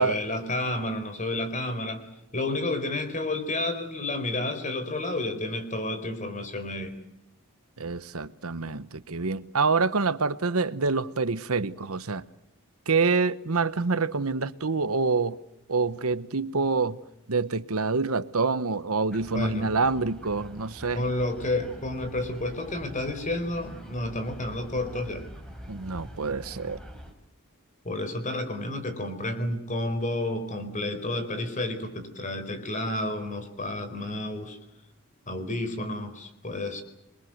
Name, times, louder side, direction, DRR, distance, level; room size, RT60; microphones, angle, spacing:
voice 1, 0.0-2.1 2.3-6.9 19.3-19.7 20.9-25.3 27.8-34.6 35.3-36.8, left 1 dB, 35° left, 4.6 m, -31 dB
voice 2, 7.8-12.2 12.9-15.4 15.7-17.0 17.3-21.0 25.7-26.8, right 4 dB, 75° right, 1.1 m, -26 dB
sound 1, 19.1-27.1, equal, 5° left, 4.7 m, -44 dB
28.0 x 23.0 x 7.9 m
head